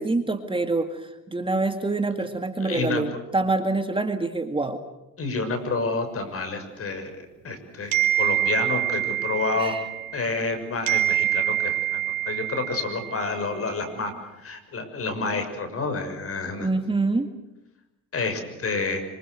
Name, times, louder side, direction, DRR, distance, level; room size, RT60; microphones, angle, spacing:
voice 1, 0.0-4.8 9.6-9.8 16.6-17.3, right 3 dB, 15° right, 6 dB, 2.1 m, -26 dB
voice 2, 2.6-3.0 5.2-9.7 10.1-14.1 14.4-16.7 18.1-19.0, left 3 dB, 40° left, 8 dB, 6.6 m, -29 dB
sound 1, 7.9-10.5 10.9-13.4, right 13 dB, 85° right, 3.6 m, -26 dB
27.0 x 25.5 x 6.5 m, 0.97 s
cardioid pair, 95°, 33 cm